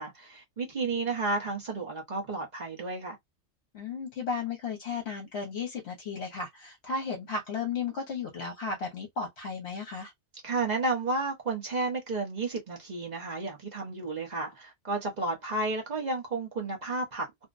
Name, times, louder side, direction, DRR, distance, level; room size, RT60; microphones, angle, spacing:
voice 1, 0.0-3.2 10.4-17.5, right 3 dB, 40° right, 0.8 m, -32 dB
voice 2, 3.7-10.1, left 5 dB, 65° left, 1.0 m, -34 dB
2.6 x 2.1 x 2.3 m
omnidirectional pair, 1.2 m